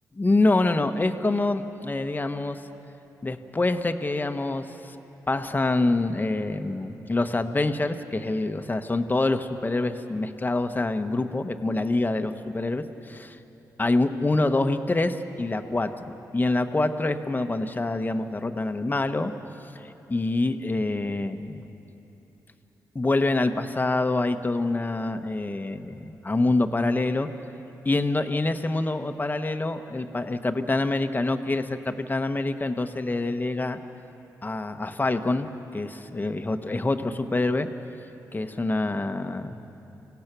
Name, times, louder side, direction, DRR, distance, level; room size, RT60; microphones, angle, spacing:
voice 1, 0.1-2.6 3.2-4.9 5.3-13.4 13.8-15.9 16.3-19.3 19.7-21.6 22.9-27.3 27.8-33.8 34.4-35.5 35.7-37.7 38.3-39.6, left 2 dB, 25° left, 8 dB, 1.2 m, -26 dB
27.0 x 16.5 x 6.1 m, 3.0 s
supercardioid pair, 55°, 7 cm